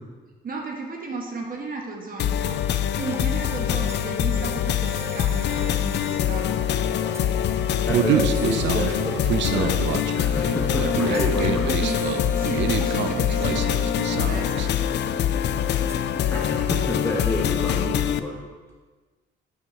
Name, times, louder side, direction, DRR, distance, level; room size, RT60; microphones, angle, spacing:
voice 1, 0.4-2.6 2.9-6.5 8.0-8.3 10.9-14.8, right 3 dB, 45° right, 0 dB, 1.1 m, -34 dB
sound 1, 2.2-18.2, left 9 dB, 60° left, 0.4 m, -24 dB
sound 2, 3.0-16.6, equal, 15° right, 0.6 m, -41 dB
voice 2, 7.8-9.2 9.5-11.7 16.3-18.4, left 1 dB, 10° left, -3 dB, 1.0 m, -29 dB
Human voice, 7.9-14.7, right 9 dB, 65° right, 0.5 m, -27 dB
6.3 x 4.6 x 5.6 m, 1.3 s
cardioid pair, 90°, 20 cm